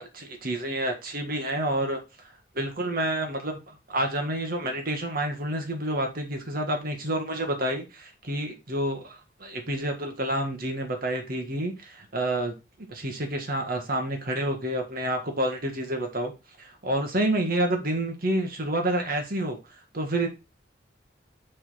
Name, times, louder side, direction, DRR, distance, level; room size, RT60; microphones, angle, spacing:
voice 1, 0.0-2.0 2.6-16.3 16.6-19.6 19.9-20.3, right 1 dB, 55° right, 1.8 m, -29 dB
5.7 x 5.1 x 4.2 m
head